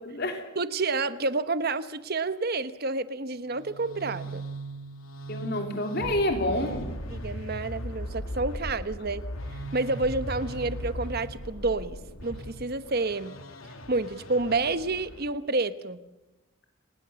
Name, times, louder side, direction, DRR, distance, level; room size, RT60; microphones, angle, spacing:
voice 1, 0.0-0.4 5.3-6.9, left 1 dB, 50° left, 4 dB, 3.2 m, -28 dB
voice 2, 0.6-4.4 7.1-9.2 9.7-13.4 13.9-16.0, right 3 dB, 45° right, 13 dB, 1.1 m, -29 dB
sound 1, 3.4-15.3, equal, 80° left, 2.7 m, -38 dB
30.0 x 19.5 x 7.0 m, 1.0 s
head